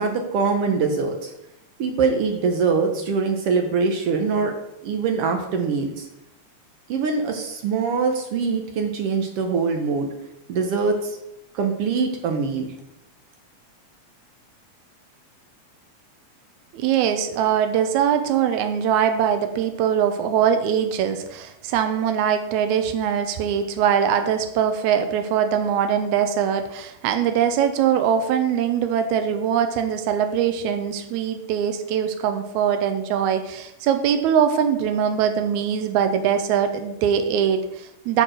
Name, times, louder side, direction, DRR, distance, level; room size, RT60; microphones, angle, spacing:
voice 1, 0.0-1.3 1.8-4.5 4.8-6.1 6.9-10.1 10.5-11.2 11.5-12.7, right 5 dB, 70° right, 4 dB, 1.5 m, -23 dB
voice 2, 16.7-38.2, right 8 dB, 85° right, 7 dB, 2.0 m, -22 dB
6.3 x 4.5 x 6.2 m, 0.86 s
omnidirectional pair, 3.3 m